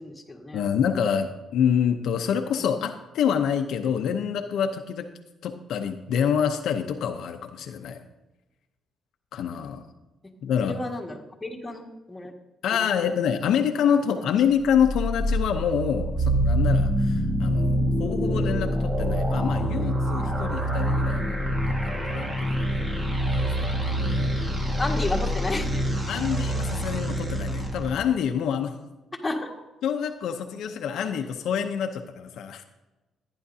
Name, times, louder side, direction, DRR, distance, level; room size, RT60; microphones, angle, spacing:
voice 1, 0.0-0.6 2.6-2.7 10.6-12.3 12.7-13.1 14.1-14.2 24.8-26.1 29.2-29.5, left 2 dB, 15° left, -1 dB, 1.8 m, -32 dB
voice 2, 0.5-5.1 5.4-8.0 9.3-9.8 10.4-10.8 12.6-21.4 21.7-22.7 23.3-24.8 26.1-28.8 29.8-32.6, left 8 dB, 80° left, 5 dB, 0.7 m, -27 dB
sound 1, 14.6-27.9, equal, 25° right, 1.8 m, -26 dB
14.0 x 9.9 x 2.8 m, 1.1 s
cardioid pair, 90°, 0 cm